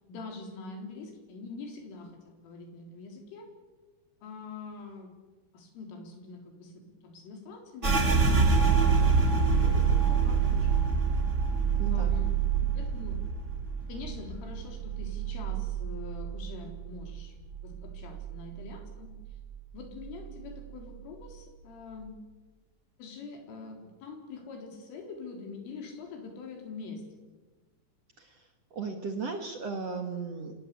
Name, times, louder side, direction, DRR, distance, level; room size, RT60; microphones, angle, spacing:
voice 1, 0.1-3.5 4.2-5.2 5.5-10.8 11.9-13.2 13.9-17.4 17.6-19.1 19.7-22.2 23.0-27.0, left 4 dB, 80° left, 4 dB, 6.5 m, -44 dB
sound 1, 7.8-17.2 17.5-18.8 19.1-19.6 20.0-20.6, right 5 dB, 30° right, 1.2 m, -26 dB
voice 2, 11.8-12.2 28.2-30.5, right 4 dB, 65° right, 5 dB, 1.5 m, -36 dB
27.0 x 18.5 x 8.5 m, 1.2 s
omnidirectional pair, 5.6 m